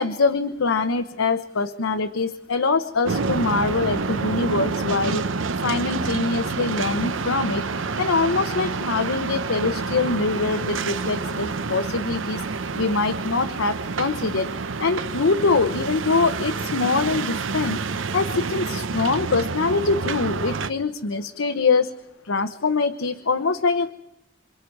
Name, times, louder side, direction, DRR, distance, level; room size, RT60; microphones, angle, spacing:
voice 1, 0.0-5.3 5.6-7.7 8.0-12.4 12.7-14.5 14.8-17.8 18.1-21.9 22.2-23.9, left 4 dB, 90° left, 7 dB, 0.9 m, -23 dB
sound 1, 3.1-20.7, right 4 dB, 75° right, 0.8 m, -28 dB
28.0 x 26.0 x 4.7 m, 0.90 s
head